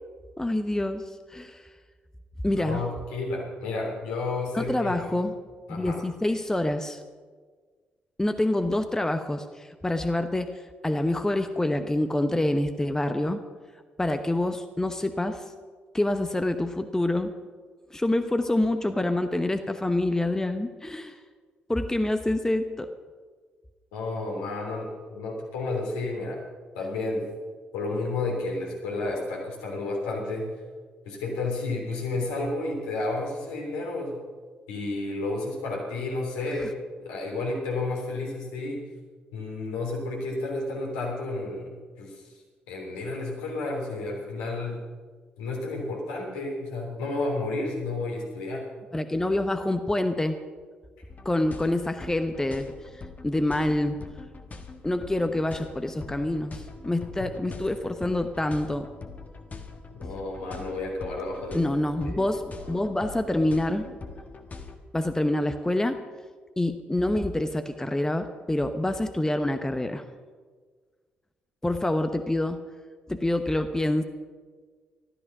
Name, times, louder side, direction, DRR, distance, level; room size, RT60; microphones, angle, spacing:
voice 1, 0.4-1.7 2.4-2.8 4.5-5.4 5.7-7.0 8.2-13.4 14.0-15.4 15.9-17.3 17.9-21.2 21.7-22.9 36.5-36.7 48.9-50.4 51.2-52.7 53.2-54.0 54.8-58.9 61.5-63.9 64.9-66.0 66.6-70.0 71.6-72.6 73.1-74.0, left 1 dB, 10° left, 8 dB, 0.9 m, -26 dB
voice 2, 2.5-5.1 5.7-6.0 23.9-26.4 26.7-27.3 27.7-30.5 31.0-34.2 34.7-36.7 37.0-38.8 39.3-42.3 42.7-44.8 45.4-48.7 57.2-57.3 59.9-61.6 62.0-62.3, left 2 dB, 70° left, -2 dB, 3.3 m, -31 dB
sound 1, 51.1-64.8, left 4 dB, 35° left, 1.5 m, -43 dB
14.0 x 13.0 x 6.0 m, 1.5 s
figure-of-eight pair, 40°, 5 cm